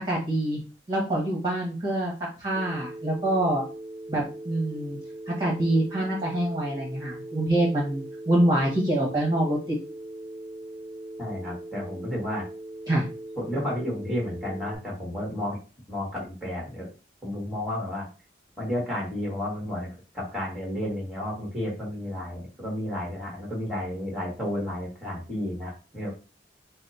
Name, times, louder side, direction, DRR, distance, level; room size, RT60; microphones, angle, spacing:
voice 1, 0.0-0.6 0.9-2.1 2.4-3.6 4.1-5.0 5.3-9.8 12.9-13.0, right 1 dB, 25° right, -4 dB, 1.3 m, -25 dB
Telephone, 2.6-14.8, right 1 dB, 65° right, 0.6 m, -40 dB
voice 2, 11.2-12.5 13.4-15.6 15.9-16.9 17.2-18.1 18.6-26.1, left 1 dB, ahead, -3 dB, 1.4 m, -32 dB
4.1 x 2.1 x 4.2 m, 0.32 s
head